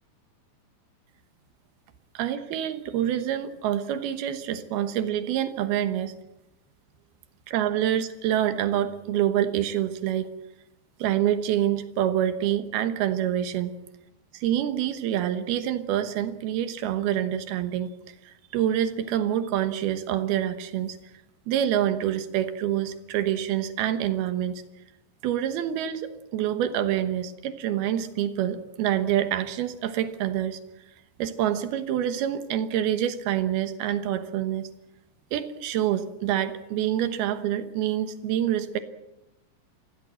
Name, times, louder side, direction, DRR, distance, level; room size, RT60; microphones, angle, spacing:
voice 1, 2.1-6.1 7.5-10.3 11.0-13.7 14.4-17.9 18.3-21.0 21.5-24.6 25.2-30.6 31.2-34.7 35.3-38.8, right 11 dB, 90° right, 10 dB, 3.2 m, -26 dB
26.0 x 16.5 x 7.7 m, 0.92 s
omnidirectional pair, 4.3 m